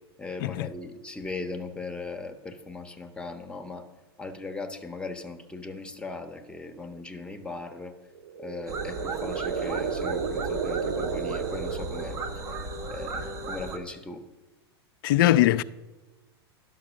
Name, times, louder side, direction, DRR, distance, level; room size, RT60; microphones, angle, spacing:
voice 1, 0.2-3.9 4.2-7.9 8.4-12.2 12.9-14.2, left 3 dB, 5° left, 1.1 m, -38 dB
sound 1, 8.1-12.5, right 6 dB, 75° right, 0.6 m, -32 dB
sound 2, 8.7-13.8, right 3 dB, 25° right, 1.2 m, -35 dB
voice 2, 15.0-15.6, left 14 dB, 55° left, 0.4 m, -21 dB
11.0 x 6.1 x 6.3 m
hypercardioid pair, 105°, 14 cm